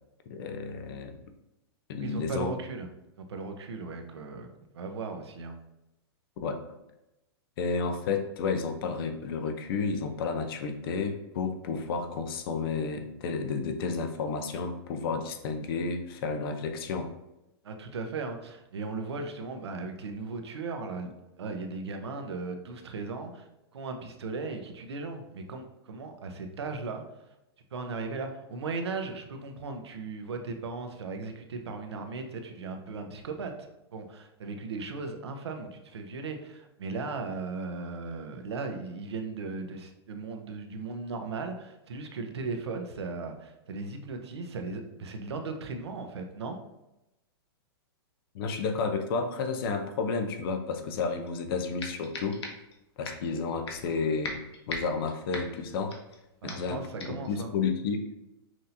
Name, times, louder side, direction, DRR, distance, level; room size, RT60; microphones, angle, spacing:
voice 1, 0.3-1.2 1.9-2.5 6.4-6.8 7.6-17.1 48.3-52.4 53.0-54.4 54.7-55.9 56.4-58.1, left 4 dB, 60° left, 6 dB, 0.7 m, -31 dB
voice 2, 2.0-2.9 3.2-4.5 4.7-5.6 17.6-27.0 27.7-33.5 33.9-46.6 56.4-57.5, right 4 dB, 90° right, 5 dB, 0.7 m, -37 dB
sound 1, 51.3-51.4 51.8-52.8 53.0-53.3 53.7-54.0 54.2-56.2 56.5-56.7 57.0-57.3, left 2 dB, 80° left, 1.0 m, -39 dB
5.9 x 2.8 x 2.7 m, 0.92 s
hypercardioid pair, 130°, 14 cm